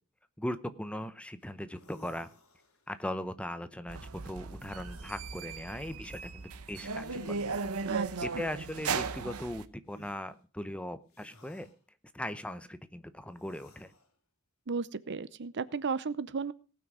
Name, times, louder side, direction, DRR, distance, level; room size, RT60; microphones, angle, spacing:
voice 1, 0.4-2.3 2.9-7.4 8.2-11.7 12.1-13.9, left 1 dB, 5° left, 12 dB, 0.7 m, -39 dB
sound 1, 1.4-1.5 1.7-3.0 4.8-5.4 7.0-7.8 9.9-10.2 11.1-11.7 13.3-14.1, left 1 dB, 70° left, 2.7 m, -55 dB
sound 2, 3.9-9.6, right 5 dB, 80° right, 0.9 m, -37 dB
voice 2, 7.9-8.4 14.7-16.5, right 5 dB, 55° right, 17 dB, 0.6 m, -34 dB
18.5 x 6.3 x 6.2 m, 0.37 s
head